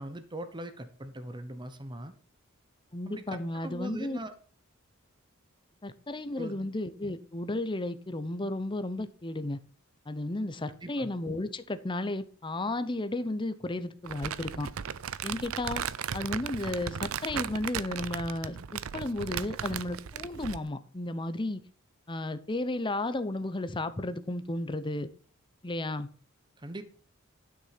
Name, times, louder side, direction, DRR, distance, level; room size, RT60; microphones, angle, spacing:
voice 1, 0.0-2.1 3.1-4.3 6.4-6.7 10.8-11.1 26.6-26.8, right 1 dB, 20° right, 1.1 m, -41 dB
voice 2, 2.9-4.2 5.8-9.6 10.1-14.7 15.2-15.8 16.1-21.6 22.1-25.1 25.6-26.1, left 2 dB, 25° left, 0.8 m, -33 dB
Crumpling crinkling, 14.1-20.7, right 8 dB, 75° right, 0.5 m, -36 dB
11.5 x 6.5 x 5.9 m
head